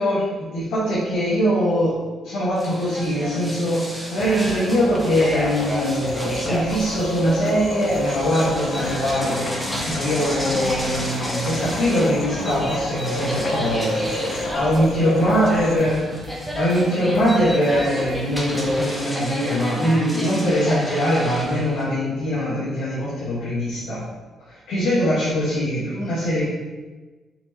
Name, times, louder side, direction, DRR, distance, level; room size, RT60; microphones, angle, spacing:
voice 1, 0.0-24.0 24.5-26.4, equal, 80° left, -8 dB, 1.1 m, -22 dB
sound 1, 2.6-21.8, equal, 5° left, 0.9 m, -31 dB
sound 2, 4.2-19.0, right 1 dB, 55° right, 0.7 m, -39 dB
sound 3, 4.6-15.8, left 1 dB, 60° left, 0.6 m, -30 dB
4.3 x 4.3 x 2.8 m, 1.3 s
cardioid pair, 90°, 0 cm